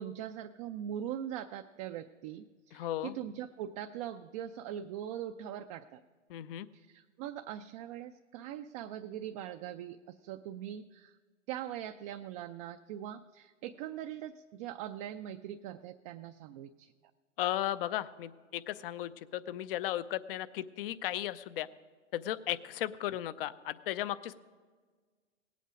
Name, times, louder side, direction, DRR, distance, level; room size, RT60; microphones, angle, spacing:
voice 1, 0.0-6.0 6.7-11.2 11.5-16.9, right 10 dB, 35° right, 6 dB, 0.4 m, -41 dB
voice 2, 2.7-3.1 6.3-6.7 17.4-21.7 22.1-24.3, left 13 dB, 50° left, 16 dB, 0.6 m, -35 dB
18.0 x 8.4 x 4.9 m, 1.5 s
hypercardioid pair, 110°, 37 cm